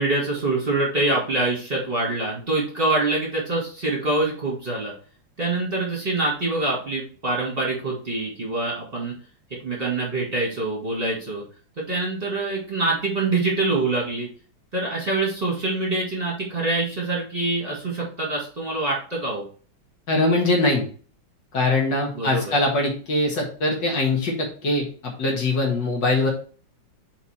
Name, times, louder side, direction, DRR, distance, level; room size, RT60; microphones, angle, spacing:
voice 1, 0.0-4.9 5.4-9.1 9.6-11.4 11.8-14.3 14.7-19.4 22.1-22.5, right 2 dB, 25° right, -4 dB, 1.9 m, -25 dB
voice 2, 20.1-20.8 21.5-26.3, left 2 dB, 55° left, -1 dB, 2.2 m, -22 dB
5.8 x 4.5 x 4.2 m, 0.42 s
omnidirectional pair, 2.4 m